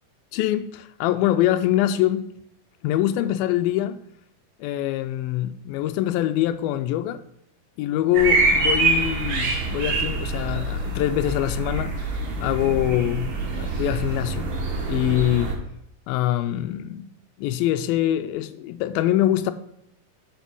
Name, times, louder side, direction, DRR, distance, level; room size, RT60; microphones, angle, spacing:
voice 1, 0.3-2.2 2.8-4.0 4.6-7.2 7.8-11.9 12.4-14.5 14.9-15.6 16.1-17.1 17.4-19.5, left 13 dB, 90° left, 2.4 m, -24 dB
sound 1, 8.1-15.5, right 3 dB, 50° right, 1.6 m, -25 dB
7.1 x 5.3 x 6.1 m
omnidirectional pair, 4.1 m